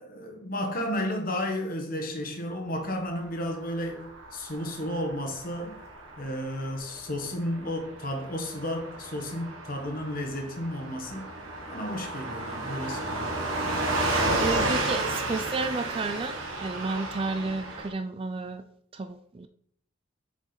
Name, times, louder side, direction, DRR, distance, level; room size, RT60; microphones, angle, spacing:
voice 1, 0.0-5.8 6.2-11.2 11.7-13.3, left 1 dB, 45° left, 1.2 m, -33 dB
Car passing by / Truck, 3.5-17.9, right 2 dB, 85° right, 1.5 m, -32 dB
voice 2, 14.1-18.6 18.9-19.5, right 3 dB, 25° right, 0.3 m, -32 dB
6.7 x 5.1 x 4.0 m
head